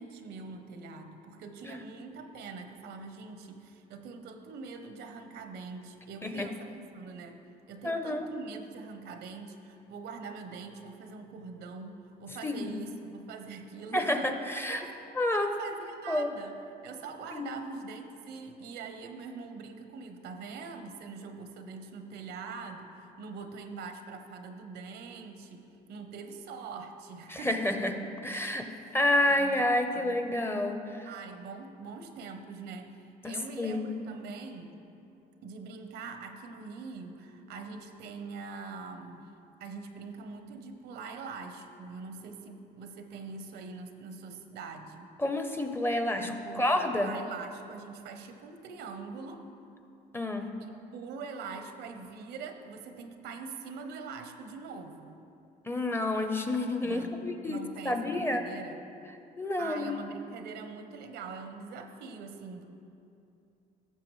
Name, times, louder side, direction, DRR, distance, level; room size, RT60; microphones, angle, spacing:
voice 1, 0.0-7.4 7.7-14.4 14.7-14.9 15.3-27.8 28.6-28.8 29.3-29.5 29.9-30.3 31.0-34.8 35.4-39.3 39.6-45.1 46.2-49.5 50.9-55.2 56.8-57.2 57.4-58.8 59.6-62.7, right 4 dB, 80° right, 7 dB, 0.8 m, -43 dB
voice 2, 7.8-8.2 12.4-12.7 13.9-14.8 15.2-15.5 16.1-16.3 17.3-17.6 27.3-28.0 28.2-28.7 28.9-31.1 33.2-33.8 45.2-47.1 50.1-50.5 55.7-58.4 59.4-60.0, left 1 dB, 15° left, 6 dB, 0.6 m, -29 dB
14.5 x 6.6 x 3.1 m, 2.7 s
cardioid pair, 110°, 17 cm